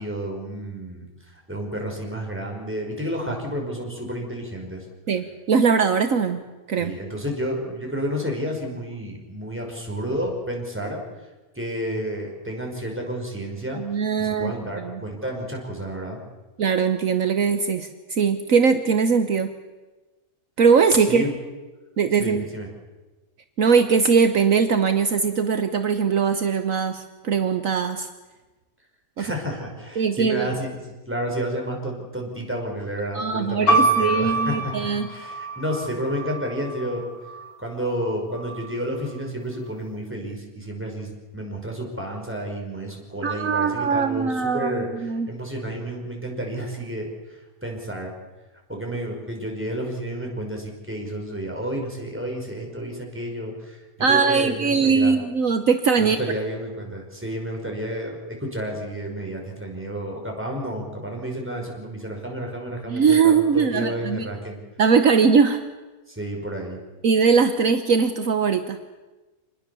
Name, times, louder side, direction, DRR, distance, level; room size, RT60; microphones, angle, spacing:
voice 1, 0.0-4.8 6.8-11.0 11.6-13.8 14.2-16.2 21.1-21.4 22.2-22.7 29.2-30.8 31.1-37.0 37.6-48.1 48.7-55.2 56.0-64.6 66.1-66.8, equal, 10° right, 0 dB, 5.2 m, -31 dB
voice 2, 5.1-6.4 6.7-6.9 13.7-15.0 16.6-19.5 20.6-21.3 22.0-22.4 23.6-28.1 29.2-29.3 30.0-30.5 33.1-35.1 43.2-45.3 54.0-56.2 62.9-64.3 64.8-65.6 67.0-68.8, right 5 dB, 65° right, 8 dB, 1.4 m, -21 dB
sound 1, 33.7-37.5 38.3-39.1, right 2 dB, 75° left, 2.5 m, -26 dB
27.0 x 20.5 x 7.0 m, 1.2 s
omnidirectional pair, 1.6 m